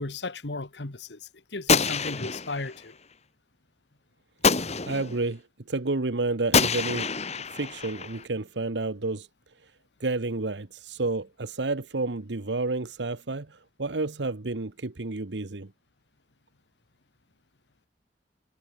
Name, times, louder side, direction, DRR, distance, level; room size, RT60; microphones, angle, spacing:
voice 1, 0.0-3.0, left 3 dB, 80° left, 1.7 m, -35 dB
Gunshot gunfire, 1.7-2.8 4.4-5.2 6.5-8.2, left 5 dB, 40° left, 3.0 m, -26 dB
voice 2, 4.8-5.4 5.7-9.3 10.0-15.7, right 3 dB, 85° right, 1.1 m, -30 dB
head